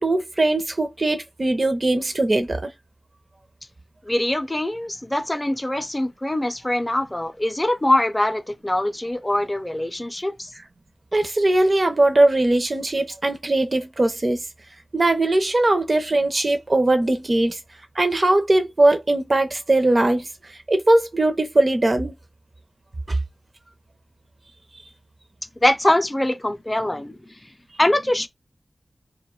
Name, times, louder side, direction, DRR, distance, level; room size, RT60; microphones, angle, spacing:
voice 1, 0.0-2.7 10.6-10.7 11.1-14.4 14.9-17.6 18.0-22.1 23.1-23.2, right 2 dB, 45° right, 0.6 m, -20 dB
voice 2, 4.1-10.5 25.6-27.2 27.8-28.3, left 1 dB, 20° left, 0.5 m, -23 dB
2.5 x 2.2 x 3.7 m
wide cardioid pair, 65°, 0 cm